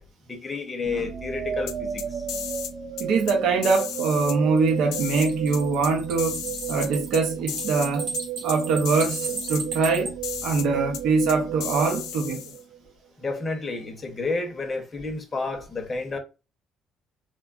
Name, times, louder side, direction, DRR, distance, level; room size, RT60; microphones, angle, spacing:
voice 1, 0.0-2.2 13.2-16.2, left 3 dB, 25° left, 0.7 m, -31 dB
sound 1, 0.8-12.9, right 8 dB, 45° right, 0.3 m, -34 dB
sound 2, 1.7-2.7 3.0-3.3 3.6-4.4 4.9-5.9 6.2-7.2 7.5-8.2 8.5-8.6 8.8-9.6 10.2-10.7 10.9-11.0 11.3-12.6, left 9 dB, 80° left, 0.4 m, -34 dB
voice 2, 3.0-6.4 6.7-8.1 8.4-10.1 10.4-12.5, right 4 dB, 70° right, 0.7 m, -23 dB
sound 3, 4.6-10.1, right 4 dB, 90° right, 1.1 m, -35 dB
3.1 x 2.2 x 2.3 m
cardioid pair, 130°, 0 cm